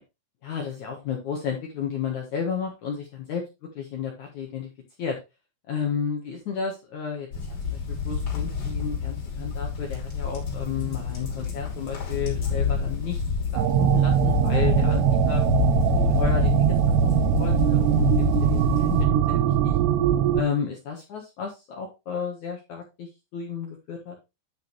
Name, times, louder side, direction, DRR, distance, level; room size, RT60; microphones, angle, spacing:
voice 1, 0.4-3.4 3.8-4.7 5.0-5.2 5.7-13.2 13.5-15.4 15.9-16.5 17.0-19.8 20.3-24.2, left 7 dB, 65° left, 0 dB, 2.0 m, -32 dB
sound 1, 7.3-19.0, left 6 dB, 40° left, 3.6 m, -27 dB
sound 2, 13.5-20.4, right 12 dB, 75° right, 2.8 m, -22 dB
10.0 x 5.8 x 3.2 m, 0.25 s
omnidirectional pair, 5.3 m